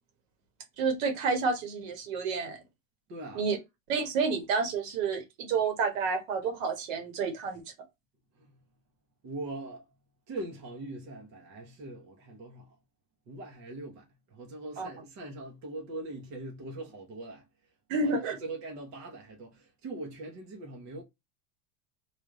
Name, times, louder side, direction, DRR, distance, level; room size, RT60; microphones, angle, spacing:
voice 1, 0.8-2.6 3.3-3.6 3.9-7.6 14.8-14.9 17.9-18.4, right 4 dB, 65° right, 1.4 m, -29 dB
voice 2, 3.1-3.4 8.4-8.5 9.2-9.8 10.3-12.7 13.3-14.0 14.3-17.4 18.0-21.0, right 2 dB, 35° right, 0.9 m, -41 dB
3.4 x 2.6 x 3.7 m
supercardioid pair, 165°, 43 cm